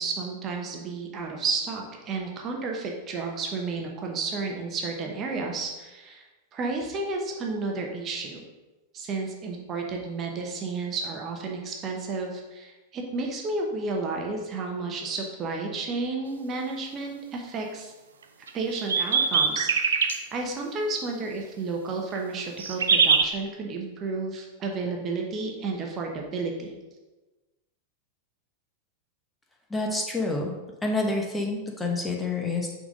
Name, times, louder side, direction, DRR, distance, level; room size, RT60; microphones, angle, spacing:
voice 1, 0.0-6.3 6.5-8.4 8.9-17.9 18.5-20.0 20.3-26.8, right 3 dB, 30° right, 1 dB, 0.9 m, -32 dB
sound 1, 18.5-20.2 22.4-23.2, right 5 dB, 65° right, 0.5 m, -22 dB
voice 2, 29.7-30.5 30.8-32.7, left 2 dB, 10° left, 0 dB, 1.0 m, -28 dB
6.0 x 4.1 x 5.0 m, 1.1 s
figure-of-eight pair, 90°, 0 cm